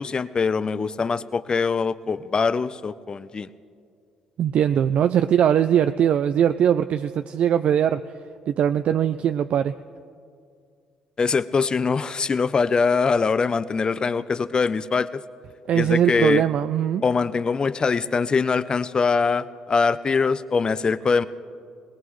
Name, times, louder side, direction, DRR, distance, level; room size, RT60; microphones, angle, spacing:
voice 1, 0.0-3.5 11.2-15.2 15.7-16.4 17.0-21.3, left 5 dB, 35° left, 15 dB, 0.6 m, -23 dB
voice 2, 4.4-8.0 8.5-9.7 15.7-17.0, right 9 dB, 60° right, 10 dB, 0.4 m, -21 dB
21.5 x 19.0 x 3.2 m, 2.3 s
supercardioid pair, 65°, 2 cm